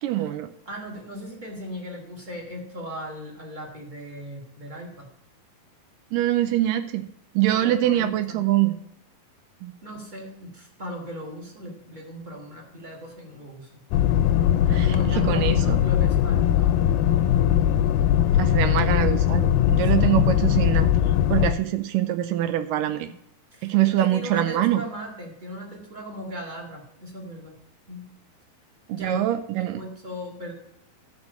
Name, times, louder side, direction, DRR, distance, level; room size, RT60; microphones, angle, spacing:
voice 1, 0.0-0.5 6.1-7.1 7.4-8.7 9.6-9.7 14.6-15.8 18.4-20.9 21.3-23.1 23.6-24.8 28.9-29.8, right 13 dB, 80° right, 11 dB, 2.0 m, -24 dB
voice 2, 0.6-5.1 7.4-8.4 9.8-13.8 14.8-16.7 19.9-20.1 23.5-27.5 27.9-28.1 28.9-29.2 29.6-30.5, equal, 25° right, -1 dB, 1.0 m, -37 dB
sound 1, 13.9-21.5, left 11 dB, 80° left, 2.2 m, -20 dB
12.5 x 4.7 x 6.9 m, 0.74 s
omnidirectional pair, 4.3 m